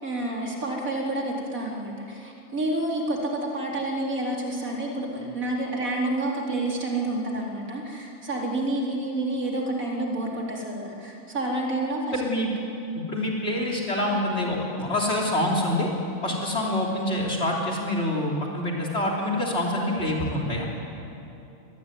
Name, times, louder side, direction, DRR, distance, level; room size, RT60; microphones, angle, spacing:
voice 1, 0.0-12.2, right 2 dB, 85° right, -1 dB, 4.3 m, -29 dB
voice 2, 12.1-12.5 13.0-15.9 16.2-20.6, left 1 dB, 50° left, -1 dB, 3.6 m, -26 dB
26.0 x 19.5 x 9.5 m, 2.8 s
omnidirectional pair, 1.4 m